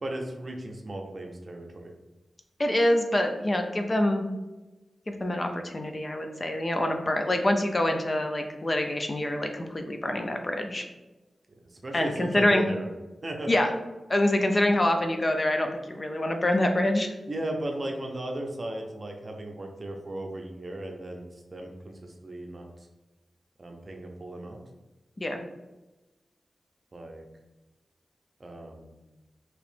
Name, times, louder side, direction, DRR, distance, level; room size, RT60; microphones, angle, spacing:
voice 1, 0.0-1.9 11.7-12.9 13.2-13.5 17.3-21.2 21.5-22.7 23.6-24.6 26.9-27.2 28.4-28.9, right 1 dB, 40° right, 2 dB, 0.6 m, -36 dB
voice 2, 2.6-4.3 5.1-10.8 11.9-12.6 13.5-13.7 14.1-17.1 25.2-25.4, left 1 dB, 35° left, 5 dB, 0.4 m, -26 dB
3.0 x 2.9 x 3.2 m, 1.1 s
wide cardioid pair, 75°, 0 cm